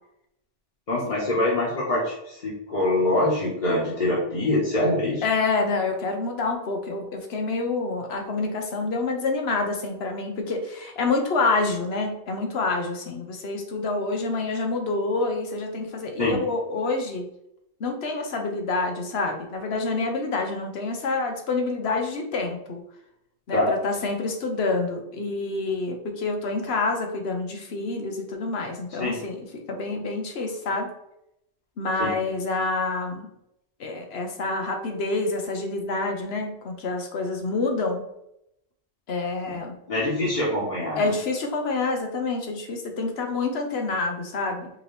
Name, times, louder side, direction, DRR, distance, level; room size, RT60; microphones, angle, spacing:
voice 1, 0.9-5.2 16.2-16.4 23.5-23.7 29.0-29.1 32.0-32.1 39.5-39.6 39.9-41.1, left 1 dB, 45° left, -8 dB, 1.3 m, -24 dB
voice 2, 5.2-17.3 17.8-22.8 23.5-30.9 31.8-33.3 33.8-38.0 39.1-39.8 41.0-44.7, left 3 dB, 80° left, 4 dB, 1.1 m, -27 dB
5.1 x 2.9 x 3.2 m, 0.81 s
omnidirectional pair, 1.0 m